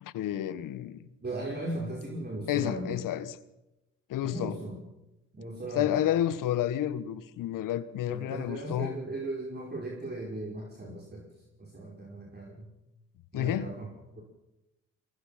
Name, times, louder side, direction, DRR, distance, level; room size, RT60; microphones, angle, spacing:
voice 1, 0.0-1.1 2.5-3.3 4.1-4.6 5.7-8.9 10.9-11.0 13.3-13.7, left 12 dB, 65° left, 1.3 m, -30 dB
voice 2, 1.2-3.0 4.2-4.8 5.3-6.0 8.1-11.3 11.6-12.7 13.3-13.9 14.1-14.2, right 2 dB, 30° right, 5.1 m, -37 dB
23.0 x 19.5 x 5.8 m
hypercardioid pair, 55°, 34 cm